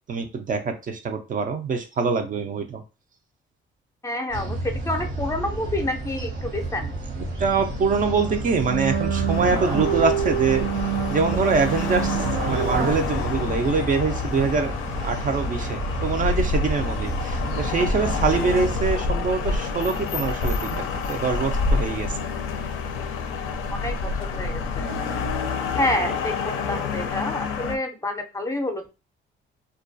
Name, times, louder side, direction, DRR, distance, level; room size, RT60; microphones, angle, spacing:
voice 1, 0.1-2.8 7.4-10.6 11.1-14.7 15.0-22.2, right 4 dB, 45° right, 6 dB, 0.4 m, -24 dB
voice 2, 4.0-6.9 23.7-24.9 25.8-28.8, left 1 dB, 15° left, 5 dB, 0.5 m, -28 dB
sound 1, 4.3-18.9, right 1 dB, 70° right, 1.0 m, -31 dB
sound 2, 7.9-12.9, right 8 dB, 85° right, 0.7 m, -27 dB
sound 3, 9.3-27.8, left 4 dB, 90° left, 0.4 m, -28 dB
2.3 x 2.2 x 2.5 m, 0.30 s
cardioid pair, 90°, 20 cm